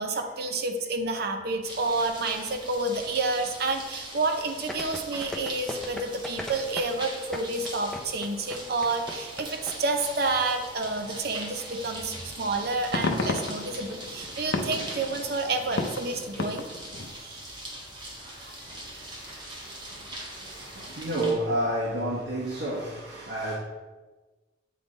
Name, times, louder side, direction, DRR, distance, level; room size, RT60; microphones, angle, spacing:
voice 1, 0.0-16.7 17.2-17.4, right 3 dB, 55° right, 4 dB, 0.7 m, -29 dB
sound 1, 1.6-21.3, right 1 dB, 25° right, 1.2 m, -41 dB
sound 2, 4.7-9.7 10.0-10.1, left 1 dB, ahead, 0.5 m, -37 dB
sound 3, 11.8-12.0 12.5-17.1, left 3 dB, 85° left, 0.6 m, -33 dB
voice 2, 18.1-23.5, right 1 dB, 85° right, -7 dB, 1.4 m, -32 dB
8.4 x 3.7 x 3.9 m, 1.2 s
head